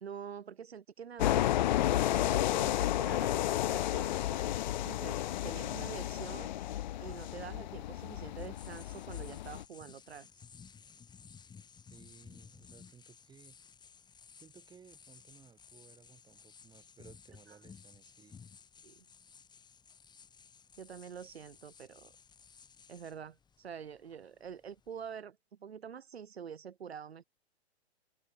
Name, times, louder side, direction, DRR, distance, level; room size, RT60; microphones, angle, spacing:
voice 1, 0.0-1.6 1.9-4.6 4.8-6.5 7.0-10.3 18.8-19.1 20.8-22.1 22.9-27.2, right 7 dB, 65° right, 1.8 m, -46 dB
sound 1, 1.2-9.6, left 13 dB, 45° left, 0.5 m, -32 dB
sound 2, 8.3-25.2, left 6 dB, 15° left, 6.0 m, -57 dB
voice 2, 11.9-13.6 14.4-18.4, right 6 dB, 15° right, 3.9 m, -59 dB
figure-of-eight pair, 115°, 33 cm